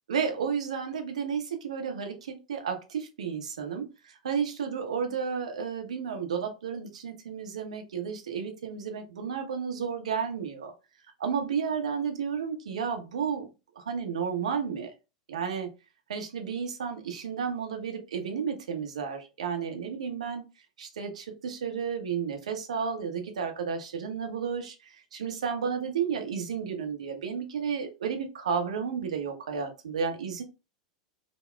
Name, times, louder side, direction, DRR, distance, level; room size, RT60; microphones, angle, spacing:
voice 1, 0.1-10.7 11.2-13.5 13.8-14.9 15.3-15.7 16.1-20.4 20.8-30.4, right 6 dB, 65° right, 0.8 m, -32 dB
5.0 x 2.2 x 2.2 m
figure-of-eight pair, 90°, 4 cm